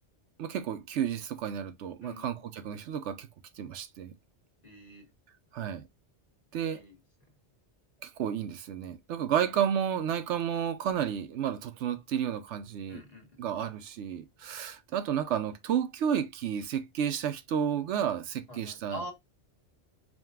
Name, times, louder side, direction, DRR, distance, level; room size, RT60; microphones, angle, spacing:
voice 1, 0.4-3.3 3.6-4.1 5.5-5.9 6.5-6.8 8.0-13.0 13.4-19.0, right 9 dB, 80° right, 0.9 m, -31 dB
voice 2, 2.0-2.4 4.6-5.1 6.7-7.0 9.4-9.5 12.9-13.6 18.5-19.1, equal, 35° left, 1.4 m, -45 dB
5.0 x 2.2 x 3.5 m
omnidirectional pair, 1.2 m